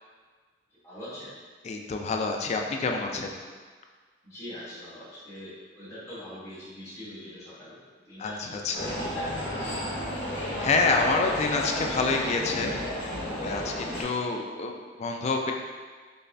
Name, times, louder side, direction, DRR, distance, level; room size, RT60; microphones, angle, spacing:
voice 1, 0.8-1.3 4.2-7.8 8.1-8.9 9.6-10.0, left 1 dB, 15° left, -13 dB, 1.1 m, -43 dB
voice 2, 1.6-3.4 8.2-9.0 10.6-12.8 13.4-15.5, left 3 dB, 35° left, 3 dB, 0.3 m, -28 dB
sound 1, 8.7-14.0, left 1 dB, 60° left, 1.2 m, -32 dB
5.3 x 2.1 x 2.6 m, 1.5 s
head